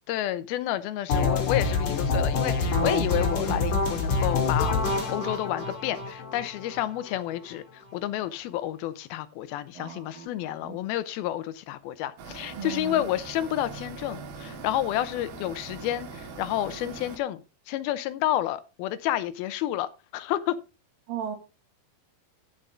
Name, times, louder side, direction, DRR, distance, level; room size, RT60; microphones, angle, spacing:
voice 1, 0.1-4.8 5.1-17.4 17.7-20.6, left 13 dB, 85° left, 2.6 m, -30 dB
sound 1, 1.1-7.1, left 4 dB, 55° left, 3.6 m, -26 dB
voice 2, 9.8-10.8 12.6-13.1 21.1-21.4, right 8 dB, 70° right, 3.1 m, -37 dB
sound 2, 12.2-17.2, right 4 dB, 90° right, 3.7 m, -41 dB
15.5 x 5.7 x 3.7 m
omnidirectional pair, 4.3 m